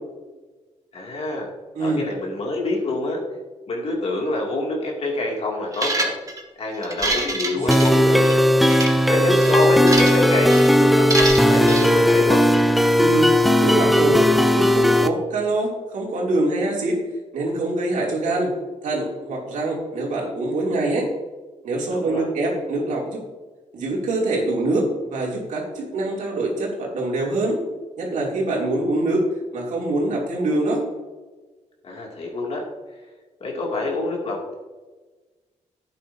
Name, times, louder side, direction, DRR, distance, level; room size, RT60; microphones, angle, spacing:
voice 1, 0.9-1.5 1.8-3.2 3.7-6.1 6.6-8.2 9.1-12.4 21.9-22.3 31.8-32.6 33.4-34.5, left 2 dB, 55° left, -1 dB, 2.7 m, -26 dB
sound 1, 5.7-6.4 6.8-8.4 8.7-8.9 9.4-10.2 10.5-10.7 11.1-11.9, right 2 dB, 25° right, 1.6 m, -26 dB
sound 2, 7.7-15.1, left 1 dB, ahead, 0.6 m, -16 dB
voice 2, 13.0-13.3 13.6-17.0 17.3-18.5 18.8-21.1 21.6-23.2 23.7-27.6 28.0-29.2 29.5-30.8, right 2 dB, 80° right, -2 dB, 3.0 m, -24 dB
11.0 x 8.9 x 2.8 m, 1.3 s
cardioid pair, 105°, 13 cm